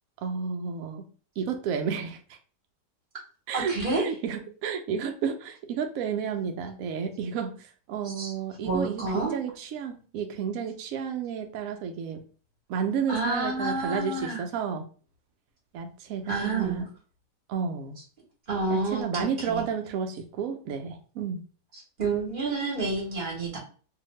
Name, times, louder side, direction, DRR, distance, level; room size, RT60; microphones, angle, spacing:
voice 1, 0.2-1.0 1.4-2.2 3.5-7.5 7.9-12.2 12.7-14.8 15.7-16.9 17.5-18.0 18.7-21.4, right 6 dB, 70° right, 5 dB, 0.8 m, -31 dB
voice 2, 3.5-4.0 8.2-8.3 8.6-9.4 13.1-14.4 16.3-16.8 18.5-19.7 22.0-23.6, right 3 dB, 35° right, -2 dB, 1.0 m, -29 dB
2.8 x 2.4 x 3.0 m, 0.40 s
omnidirectional pair, 1.8 m